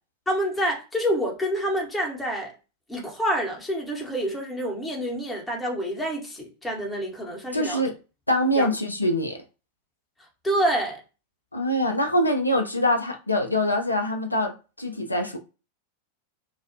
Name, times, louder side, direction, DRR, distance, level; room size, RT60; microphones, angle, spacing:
voice 1, 0.3-2.5 2.9-7.8 8.6-8.7 10.4-11.0, equal, 10° left, 0.9 m, -27 dB
voice 2, 7.5-7.9 8.3-9.4 11.5-15.4, left 1 dB, 85° left, 0.4 m, -24 dB
2.4 x 2.1 x 2.6 m
figure-of-eight pair, 90°, 0 cm